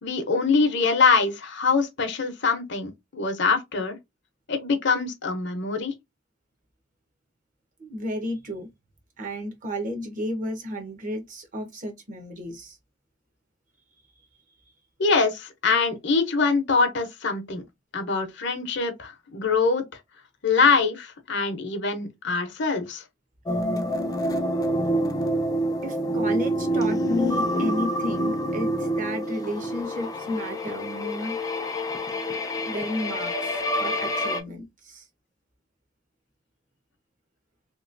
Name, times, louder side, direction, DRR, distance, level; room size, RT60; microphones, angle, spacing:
voice 1, 0.0-4.0 4.5-5.9 15.0-17.6 17.9-19.8 20.4-23.0, left 4 dB, 60° left, 0.8 m, -24 dB
voice 2, 7.8-8.7 9.2-12.8 25.8-31.4 32.7-35.0, left 1 dB, 40° right, 0.9 m, -32 dB
sound 1, 23.5-34.4, equal, 20° left, 0.5 m, -27 dB
3.0 x 2.8 x 2.5 m
head